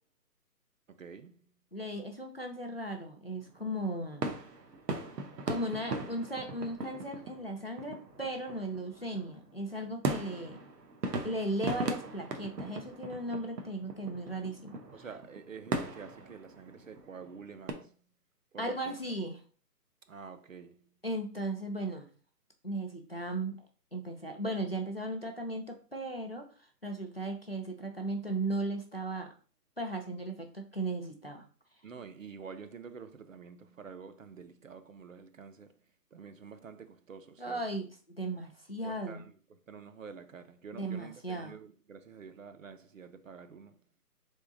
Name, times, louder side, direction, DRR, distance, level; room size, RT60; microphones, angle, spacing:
voice 1, 0.9-1.5 14.9-18.0 18.5-19.0 20.1-20.9 31.8-35.8 36.1-37.6 38.8-43.8, right 6 dB, 55° right, 0.5 m, -48 dB
voice 2, 1.7-4.3 5.5-10.6 11.2-14.8 18.6-19.4 21.0-22.1 22.6-23.6 23.9-26.5 26.8-29.3 29.8-31.4 37.4-39.3 40.8-41.6, right 1 dB, 40° left, 0.4 m, -36 dB
sound 1, 3.4-17.7, right 3 dB, 80° right, 1.0 m, -39 dB
3.6 x 3.4 x 3.9 m
hypercardioid pair, 170°, 48 cm